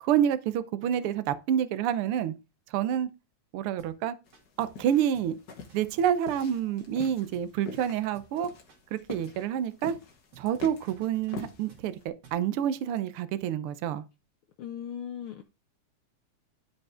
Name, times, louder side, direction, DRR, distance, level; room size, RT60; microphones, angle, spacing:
voice 1, 0.0-2.3 2.7-3.1 3.5-4.2 4.6-5.3 5.7-8.5 8.9-10.0 10.4-14.0, right 9 dB, 75° right, 1.3 m, -28 dB
sound 1, 3.8-4.0 4.3-4.9 5.1-5.4 5.7-7.9 8.1-8.4 8.7-9.5 10.3-12.5, right 6 dB, 55° right, 3.1 m, -57 dB
sound 2, 4.3-12.0, left 4 dB, 45° left, 1.3 m, -45 dB
voice 2, 14.6-15.4, left 9 dB, 75° left, 1.2 m, -37 dB
12.0 x 5.3 x 3.7 m
omnidirectional pair, 3.4 m